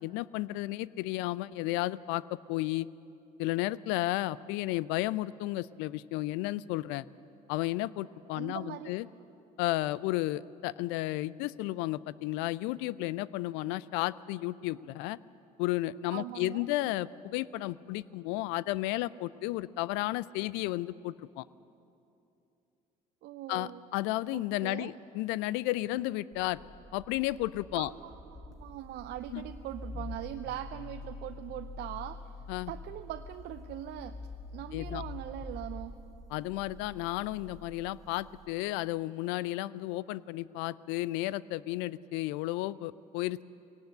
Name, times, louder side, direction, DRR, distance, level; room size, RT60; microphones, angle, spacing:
voice 1, 0.0-2.9 3.4-7.0 7.5-9.1 9.6-15.2 15.6-21.4 23.5-26.6 26.9-27.9 29.3-29.4 32.5-32.7 34.7-35.0 36.3-43.4, left 17 dB, 65° left, 20 dB, 0.5 m, -33 dB
voice 2, 8.4-9.0 16.1-16.7 23.2-23.8 24.3-24.9 27.7-32.3 32.7-34.2 34.5-36.0, right 13 dB, 60° right, 9 dB, 0.6 m, -41 dB
sound 1, 26.3-38.5, left 3 dB, 20° left, 4.1 m, -46 dB
21.0 x 18.0 x 7.9 m, 2.7 s
hypercardioid pair, 55°, 20 cm